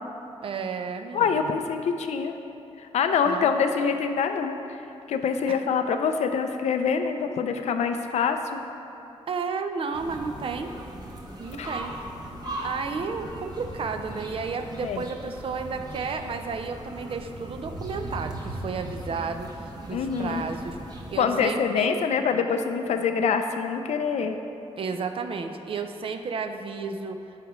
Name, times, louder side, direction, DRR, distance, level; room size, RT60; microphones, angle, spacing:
voice 1, 0.4-1.6 3.3-3.5 5.5-5.6 9.3-10.7 11.4-11.9 12.6-22.0 24.8-27.2, right 5 dB, 55° right, 7 dB, 0.5 m, -32 dB
voice 2, 1.1-2.3 2.8-4.6 5.1-8.6 11.6-11.7 14.8-15.0 19.9-20.4 21.2-24.4, left 6 dB, 85° left, 7 dB, 0.5 m, -25 dB
sound 1, 9.9-21.2, right 1 dB, 35° right, 1.0 m, -38 dB
13.0 x 4.9 x 3.1 m, 2.8 s
wide cardioid pair, 130°, 11 cm